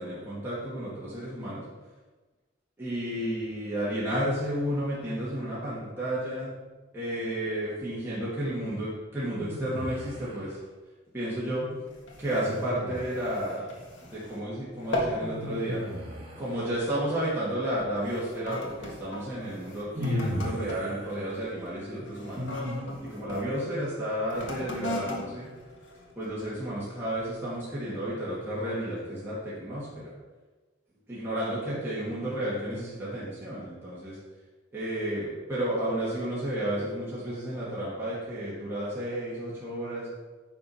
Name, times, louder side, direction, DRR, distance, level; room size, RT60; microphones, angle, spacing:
voice 1, 0.0-1.6 2.8-6.5 6.9-10.6 11.1-11.7 12.2-13.7 14.0-15.9 16.4-22.5 23.0-25.5 26.2-30.1 31.1-34.2 34.7-40.1, right 1 dB, 10° right, -10 dB, 2.3 m, -32 dB
sound 1, 9.4-10.5 12.3-13.4 15.2-17.1 19.0-19.1 19.9-23.2, left 1 dB, 30° right, 1.7 m, -36 dB
sound 2, 11.9-14.5 14.8-15.3 15.7-16.0 16.7-16.9 17.6-23.5 24.2-26.6 27.2-27.3, left 1 dB, 75° left, 1.7 m, -38 dB
9.4 x 5.2 x 5.8 m, 1.3 s
head